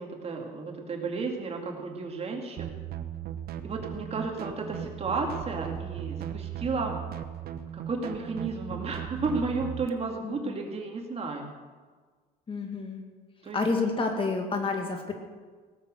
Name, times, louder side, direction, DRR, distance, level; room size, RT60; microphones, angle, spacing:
voice 1, 0.0-2.7 3.6-6.9 7.7-11.5 13.4-13.6, right 3 dB, 35° right, 2 dB, 2.2 m, -33 dB
sound 1, 2.6-9.9, right 10 dB, 65° right, 0.9 m, -37 dB
voice 2, 10.2-10.6 12.5-13.0 13.5-15.1, left 3 dB, 30° left, 3 dB, 2.2 m, -29 dB
17.5 x 7.6 x 6.5 m, 1.5 s
cardioid pair, 110°, 17 cm